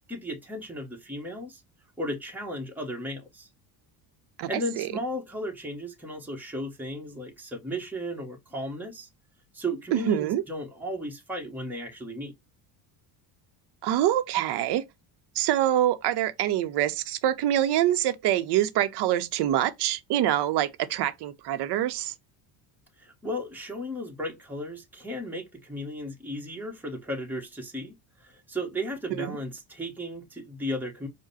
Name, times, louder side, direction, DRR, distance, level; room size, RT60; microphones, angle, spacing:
voice 1, 0.1-1.6 2.0-3.5 4.5-9.1 9.5-12.3 23.0-27.9 28.2-31.1, equal, 5° right, 1.1 m, -35 dB
voice 2, 9.9-10.4 13.8-14.8 15.4-22.1 29.2-29.3, right 12 dB, 60° right, 0.8 m, -25 dB
5.0 x 2.2 x 4.1 m
cardioid pair, 115°, 44 cm